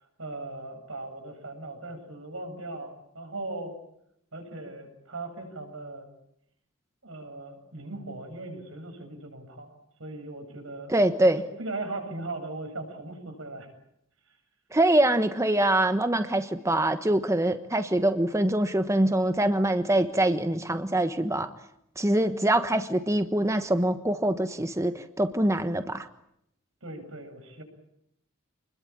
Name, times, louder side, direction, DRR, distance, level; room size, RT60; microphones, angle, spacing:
voice 1, 0.2-3.7 4.3-6.1 7.0-11.0 11.6-13.7 14.2-14.3 26.8-27.6, right 2 dB, 75° right, 5 dB, 7.9 m, -38 dB
voice 2, 10.9-11.4 14.7-21.5 22.0-26.1, right 1 dB, 15° right, 9 dB, 1.2 m, -24 dB
28.5 x 21.5 x 8.8 m, 0.77 s
head